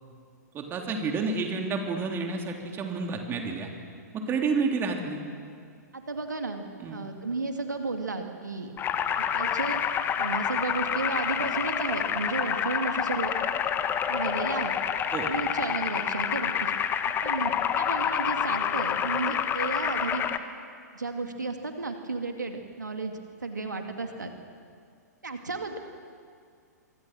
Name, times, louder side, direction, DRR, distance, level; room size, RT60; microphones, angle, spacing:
voice 1, 0.5-3.7 4.1-5.2 6.8-7.1 15.1-15.3, right 4 dB, 25° right, 2 dB, 3.3 m, -30 dB
voice 2, 5.9-6.6 6.9-8.7 9.2-9.8 10.2-13.3 14.1-14.7 15.3-16.8 17.2-20.3 20.9-24.3 25.2-25.8, right 3 dB, 85° right, 5 dB, 2.2 m, -33 dB
sound 1, 8.8-20.4, left 8 dB, 25° left, 1.3 m, -28 dB
25.5 x 24.0 x 6.3 m, 2.2 s
figure-of-eight pair, 110°, 9 cm